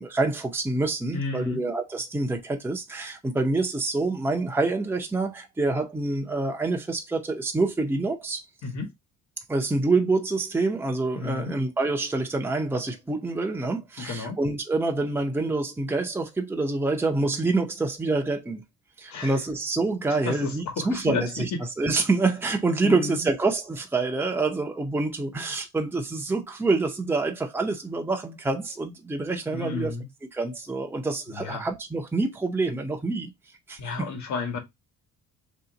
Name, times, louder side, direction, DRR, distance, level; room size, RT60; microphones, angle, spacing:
voice 1, 0.0-8.4 9.5-18.6 19.0-29.9 30.3-33.3 33.7-34.1, right 3 dB, 5° right, 0.6 m, -27 dB
voice 2, 1.1-1.6 8.6-8.9 11.1-11.5 14.0-14.4 19.1-19.3 20.3-21.4 22.8-23.3 29.5-30.0 31.3-31.6 33.8-34.6, left 4 dB, 65° left, 1.4 m, -32 dB
3.0 x 2.9 x 3.9 m
cardioid pair, 120°, 31 cm